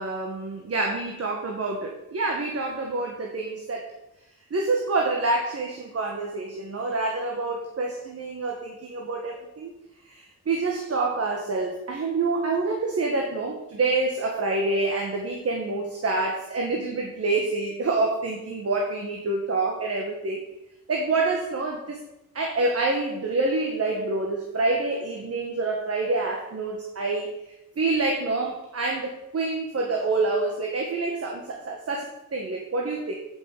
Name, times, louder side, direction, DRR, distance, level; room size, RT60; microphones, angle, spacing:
voice 1, 0.0-3.9 4.5-9.7 10.1-20.4 20.9-22.0 22.3-27.3 27.8-33.2, right 3 dB, 45° right, 1 dB, 1.5 m, -27 dB
8.6 x 7.5 x 6.6 m, 0.90 s
wide cardioid pair, 165°, 34 cm